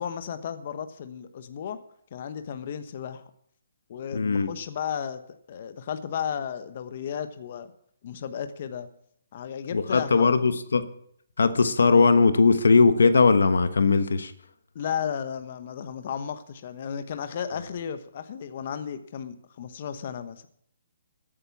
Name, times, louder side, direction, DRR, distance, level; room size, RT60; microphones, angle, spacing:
voice 1, 0.0-1.8 2.1-3.2 3.9-5.2 5.5-7.7 8.0-8.9 9.3-10.3 14.7-20.5, left 8 dB, 45° left, 10 dB, 1.0 m, -34 dB
voice 2, 4.1-4.5 9.7-10.9 11.4-14.3, left 4 dB, 85° left, 12 dB, 1.1 m, -19 dB
14.0 x 8.8 x 5.9 m, 0.66 s
hypercardioid pair, 160°, 0 cm